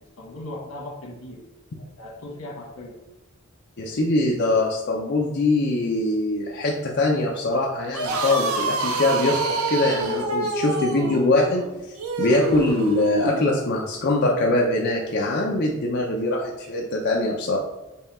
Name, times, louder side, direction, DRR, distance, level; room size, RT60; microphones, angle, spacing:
voice 1, 0.0-1.4 1.7-3.0, left 1 dB, 85° left, -2 dB, 1.4 m, -38 dB
voice 2, 3.8-9.4 9.7-17.6, left 2 dB, 50° left, -2 dB, 0.6 m, -23 dB
sound 1, 7.8-13.5, right 2 dB, 80° right, 0.6 m, -26 dB
5.4 x 2.3 x 4.1 m, 1.0 s
head